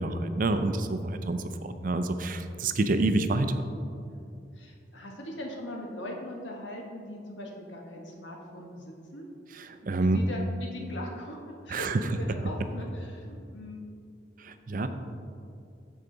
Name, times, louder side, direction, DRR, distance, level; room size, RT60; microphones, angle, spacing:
voice 1, 0.0-3.5 9.6-10.2 11.7-12.0 14.4-14.9, right 2 dB, 50° right, 9 dB, 0.5 m, -28 dB
voice 2, 4.1-9.3 10.0-13.9, left 1 dB, 90° left, 0 dB, 1.4 m, -40 dB
13.5 x 4.8 x 4.0 m, 2.4 s
head